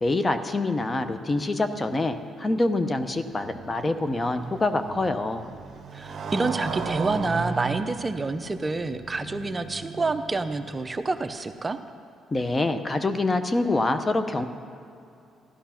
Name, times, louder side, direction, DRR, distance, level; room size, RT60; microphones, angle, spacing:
voice 1, 0.0-5.5 12.3-14.4, left 2 dB, 25° left, 9 dB, 0.8 m, -25 dB
Motorcycle, 2.9-11.0, right 5 dB, 50° right, 1.1 m, -36 dB
voice 2, 5.9-11.8, right 3 dB, 25° right, 9 dB, 0.6 m, -28 dB
14.0 x 11.5 x 5.8 m, 2.6 s
cardioid pair, 90°, 0 cm